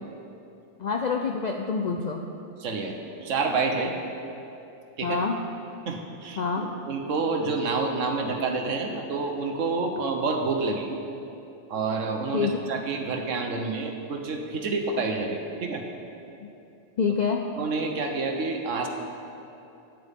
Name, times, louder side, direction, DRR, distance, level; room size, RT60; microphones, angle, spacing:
voice 1, 0.8-2.2 5.0-5.4 6.4-6.7 12.3-12.5 17.0-17.5, left 5 dB, 65° left, 3 dB, 0.4 m, -26 dB
voice 2, 2.6-2.9 3.2-3.9 5.0-5.2 5.9-10.9 11.7-15.8 17.6-18.9, right 4 dB, 80° right, 3 dB, 1.3 m, -28 dB
13.5 x 9.6 x 3.6 m, 2.8 s
omnidirectional pair, 1.3 m